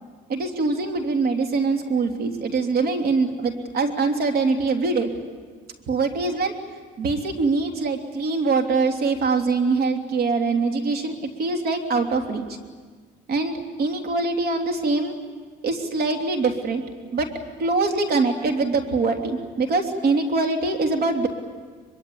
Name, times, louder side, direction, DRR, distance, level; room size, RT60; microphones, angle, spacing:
voice 1, 0.3-5.1 5.9-6.5 7.0-12.4 13.3-15.1 15.6-16.8 17.1-17.3 17.6-21.3, right 3 dB, 60° right, 4 dB, 3.1 m, -23 dB
23.5 x 23.0 x 8.7 m, 1.5 s
cardioid pair, 110°, 17 cm